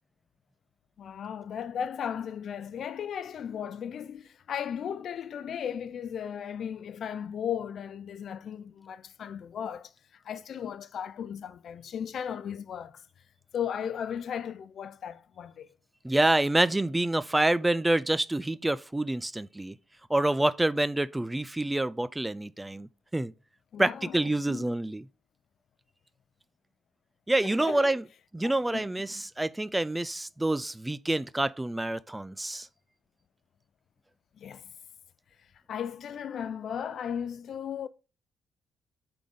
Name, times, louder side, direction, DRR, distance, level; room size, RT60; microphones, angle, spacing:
voice 1, 1.0-13.0 13.5-15.7 23.7-24.7 27.4-27.9 28.4-28.9 29.1-29.2 34.4-34.7 35.7-37.9, left 8 dB, 60° left, 0.4 m, -36 dB
voice 2, 16.0-19.7 20.1-23.3 23.8-25.0 27.3-28.0 28.3-32.7, right 1 dB, 10° right, 0.3 m, -27 dB
8.2 x 3.9 x 3.5 m
cardioid pair, 90°, 0 cm